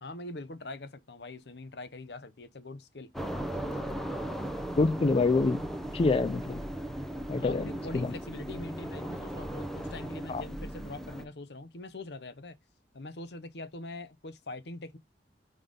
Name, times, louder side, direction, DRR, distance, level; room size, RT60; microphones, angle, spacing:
voice 1, 0.0-3.1 3.6-4.1 7.3-12.6 12.9-15.0, left 2 dB, 65° left, 0.9 m, -43 dB
sound 1, 3.1-11.2, right 1 dB, ahead, 0.8 m, -37 dB
voice 2, 4.8-5.7 5.9-6.6 7.3-7.7 7.9-8.1 10.3-10.4, left 3 dB, 30° left, 0.3 m, -26 dB
5.5 x 3.8 x 5.0 m
head